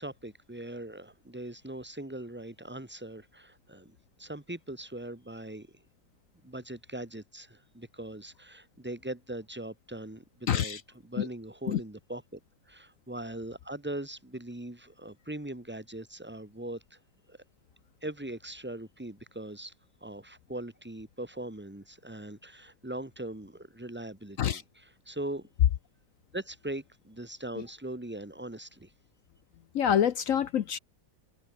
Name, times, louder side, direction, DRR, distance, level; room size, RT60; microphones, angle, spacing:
voice 1, 0.0-5.7 6.4-12.4 12.7-17.0 17.3-17.4 18.0-19.7 20.0-25.5 26.3-28.9, right 1 dB, 5° right, 1.4 m, -40 dB
voice 2, 10.5-10.8 11.2-11.3 11.7-11.8 24.4-24.6 29.7-30.8, left 9 dB, 60° left, 0.9 m, -26 dB
omnidirectional pair, 1.9 m